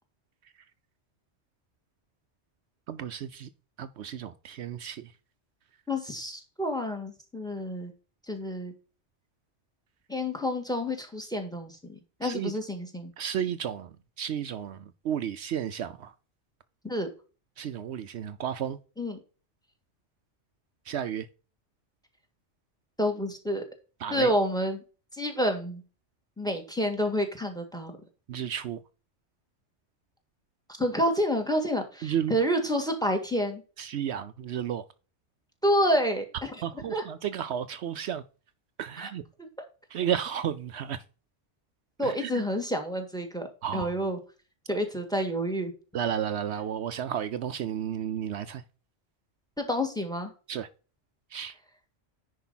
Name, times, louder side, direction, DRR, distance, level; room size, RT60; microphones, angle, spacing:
voice 1, 2.9-3.5 3.8-5.0 12.2-12.5 13.2-13.9 14.2-14.8 15.0-16.1 17.6-18.8 20.9-21.3 24.0-24.3 28.3-28.8 32.0-32.3 33.8-34.8 36.6-38.2 38.8-39.2 39.9-41.0 42.0-42.3 43.6-43.9 45.9-48.6 50.5-50.7 51.3-51.5, right 9 dB, 70° right, 0.9 m, -32 dB
voice 2, 5.9-7.9 8.3-8.7 10.1-13.1 16.8-17.1 19.0-19.2 23.0-23.6 24.1-24.8 25.1-25.8 26.4-27.9 30.8-33.6 35.6-36.6 36.9-37.0 39.0-39.1 42.0-44.2 44.7-45.7 49.6-50.3, equal, 5° left, 1.8 m, -29 dB
10.0 x 4.8 x 4.0 m
omnidirectional pair, 1.2 m